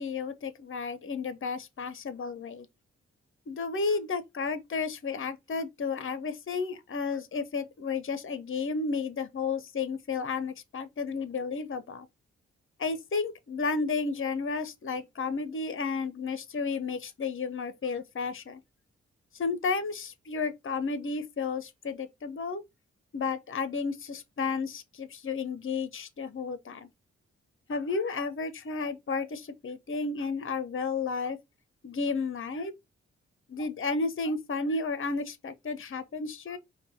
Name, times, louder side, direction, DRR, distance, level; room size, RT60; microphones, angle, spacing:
voice 1, 0.0-2.7 3.5-12.1 12.8-18.6 19.3-22.6 23.1-26.9 27.7-31.4 31.8-32.7 33.5-36.6, left 4 dB, 45° left, 0.9 m, -32 dB
5.1 x 2.3 x 4.2 m
supercardioid pair, 45°, 29 cm